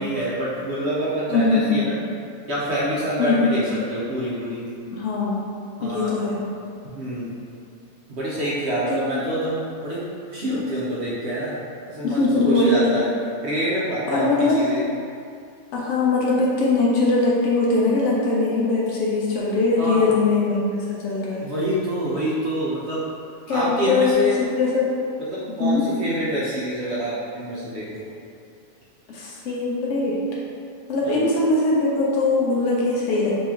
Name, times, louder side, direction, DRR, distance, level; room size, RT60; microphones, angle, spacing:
voice 1, 0.0-2.0 2.5-4.6 5.8-6.2 6.8-7.3 8.1-10.0 10.3-11.6 11.8-13.1 13.4-14.8 19.8-20.1 21.4-23.0 23.5-24.3 25.2-28.0 31.0-31.3, right 1 dB, 60° right, -8 dB, 0.7 m, -26 dB
voice 2, 1.3-1.8 3.2-3.7 4.9-5.4 5.8-6.4 9.0-9.2 12.0-13.1 14.1-14.7 15.7-21.5 23.5-24.9 25.6-25.9 29.1-30.2 30.9-33.4, left 3 dB, 70° left, -5 dB, 0.7 m, -21 dB
3.1 x 3.0 x 3.6 m, 2.4 s
omnidirectional pair, 1.8 m